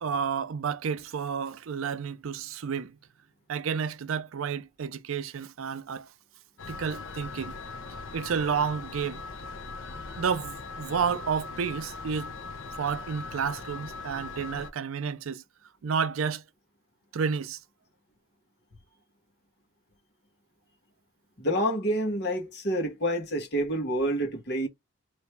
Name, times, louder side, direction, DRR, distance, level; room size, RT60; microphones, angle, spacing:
voice 1, 0.0-2.9 3.5-6.1 6.7-7.5 8.1-9.2 10.2-12.3 12.7-15.4 15.8-16.4 17.1-17.6, right 6 dB, 85° right, 0.5 m, -30 dB
sound 1, 6.6-14.7, left 3 dB, 70° left, 0.9 m, -40 dB
voice 2, 21.4-24.7, equal, 50° left, 1.4 m, -28 dB
3.4 x 3.0 x 4.4 m
head